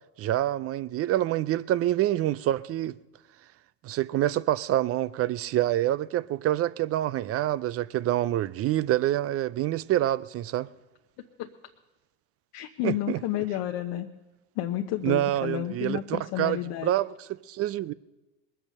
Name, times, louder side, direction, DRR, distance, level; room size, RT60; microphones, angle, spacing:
voice 1, 0.2-3.0 3.8-10.7 12.8-13.2 15.0-17.9, right 13 dB, 35° right, 0.4 m, -27 dB
voice 2, 12.5-14.1 14.6-16.9, left 13 dB, 55° left, 1.0 m, -31 dB
20.5 x 9.0 x 6.6 m
supercardioid pair, 100°, 46 cm